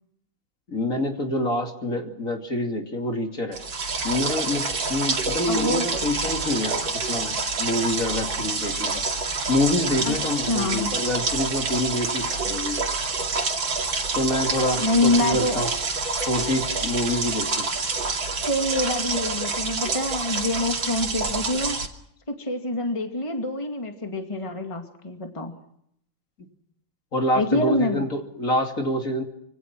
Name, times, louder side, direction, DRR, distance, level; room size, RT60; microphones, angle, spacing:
voice 1, 0.7-3.6 4.0-9.0 9.5-12.8 14.1-15.7 16.2-17.7 27.1-29.2, left 1 dB, 40° left, 3 dB, 3.1 m, -26 dB
sound 1, 3.5-21.9, right 4 dB, 75° right, 3.4 m, -27 dB
voice 2, 5.5-5.8 10.0-10.9 14.8-15.6 18.5-21.8 22.3-25.5 27.3-28.1, left 2 dB, 15° left, 4 dB, 2.3 m, -26 dB
26.5 x 24.5 x 6.1 m, 0.74 s
omnidirectional pair, 2.1 m